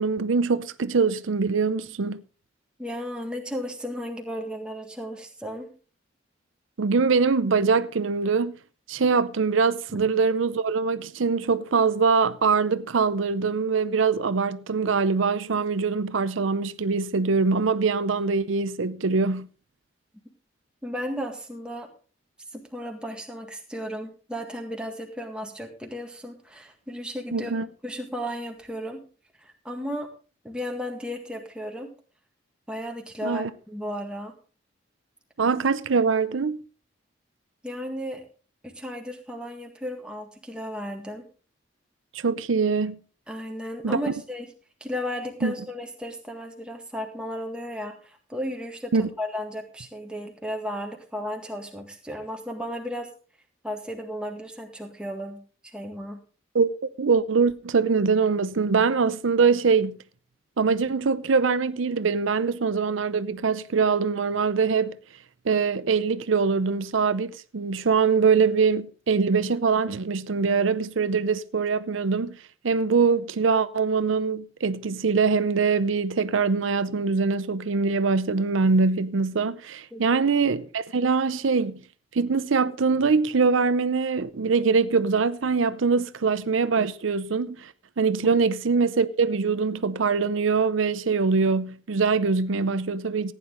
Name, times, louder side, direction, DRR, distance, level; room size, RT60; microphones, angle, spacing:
voice 1, 0.0-2.2 6.8-8.5 8.9-19.5 27.3-27.7 33.2-33.5 35.4-36.6 42.1-43.0 43.8-44.0 45.4-45.5 48.9-49.1 56.5-56.7 57.0-60.0 60.6-65.0 65.4-72.4 72.6-81.8 82.1-93.3, right 5 dB, 85° right, 0.6 m, -23 dB
voice 2, 2.8-5.7 20.8-21.9 22.5-27.5 27.8-29.0 29.4-30.1 30.4-31.9 32.7-34.3 37.6-38.3 38.6-41.2 43.3-44.5 44.8-53.1 53.6-55.4 55.6-56.2 79.9-80.2, equal, 5° right, 1.8 m, -34 dB
15.0 x 9.9 x 3.8 m
head